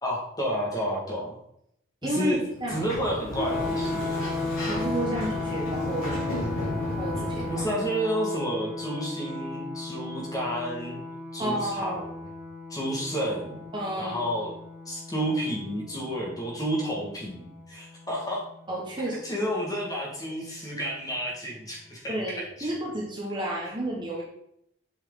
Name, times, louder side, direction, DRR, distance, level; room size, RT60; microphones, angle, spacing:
voice 1, 0.0-1.3 2.0-2.4 2.7-4.3 7.4-11.0 11.3-12.1 12.7-13.6 14.0-14.5 14.8-18.4 19.0-22.7 23.6-23.7, equal, 15° left, -3 dB, 1.7 m, -31 dB
voice 2, 2.0-2.9 4.7-6.2 6.8-7.5 11.4-12.0 13.7-14.3 18.7-19.2 22.1-24.2, right 1 dB, 20° right, -3 dB, 1.3 m, -31 dB
Sliding door, 2.5-7.8, left 1 dB, 75° left, 3.1 m, -34 dB
sound 1, 3.4-17.1, left 2 dB, 35° left, 1.2 m, -35 dB
7.8 x 4.8 x 3.8 m, 0.74 s
head